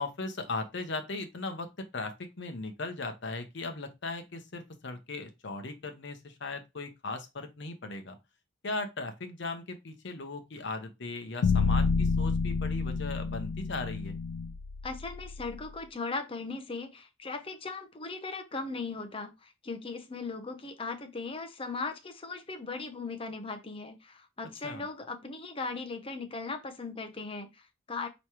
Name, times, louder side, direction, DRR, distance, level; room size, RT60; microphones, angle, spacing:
voice 1, 0.0-8.2 8.6-14.1 24.6-24.8, left 3 dB, 60° left, 0.8 m, -38 dB
sound 1, 11.4-15.6, left 4 dB, 75° left, 0.3 m, -29 dB
voice 2, 14.8-28.1, left 3 dB, 25° left, 0.6 m, -38 dB
4.7 x 3.0 x 2.9 m
head